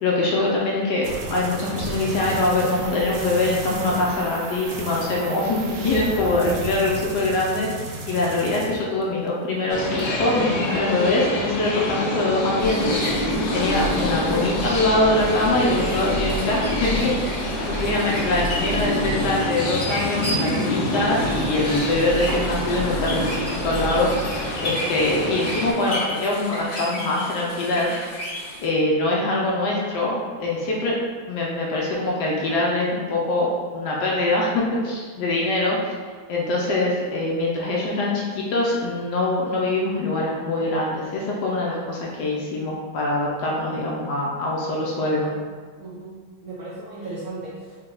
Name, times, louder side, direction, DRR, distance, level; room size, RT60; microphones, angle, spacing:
voice 1, 0.0-23.2 23.5-24.4 24.6-27.9 28.6-31.0 31.3-35.8 36.3-45.3, left 2 dB, 70° left, -3 dB, 1.1 m, -23 dB
sound 1, 1.0-9.3 9.6-10.1, right 2 dB, 85° right, 1.4 m, -33 dB
sound 2, 9.7-25.7, left 1 dB, 90° left, 1.4 m, -27 dB
sound 3, 12.6-28.7, right 1 dB, 45° left, 1.4 m, -32 dB
voice 2, 45.8-47.8, right 2 dB, 65° right, -7 dB, 0.9 m, -36 dB
4.2 x 2.2 x 3.7 m, 1.5 s
omnidirectional pair, 2.1 m